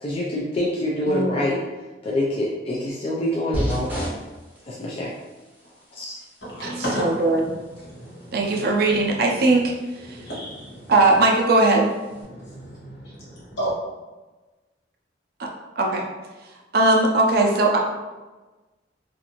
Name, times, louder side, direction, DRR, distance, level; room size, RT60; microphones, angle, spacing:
voice 1, 0.0-1.6 2.0-4.1 4.7-5.1 5.9-6.2, left 1 dB, 30° left, -5 dB, 0.3 m, -26 dB
voice 2, 1.1-1.4 6.6-6.7 7.0-7.4 8.3-9.7 10.1-10.2 10.9-11.9 15.4-15.5 15.8-16.0 16.7-17.8, right 2 dB, 55° right, 0 dB, 0.4 m, -19 dB
sound 1, 3.5-12.2, equal, 10° right, 0.6 m, -37 dB
voice 3, 6.4-11.2 12.1-13.7, right 1 dB, 75° left, -8 dB, 1.4 m, -34 dB
2.5 x 2.5 x 2.8 m, 1.2 s
head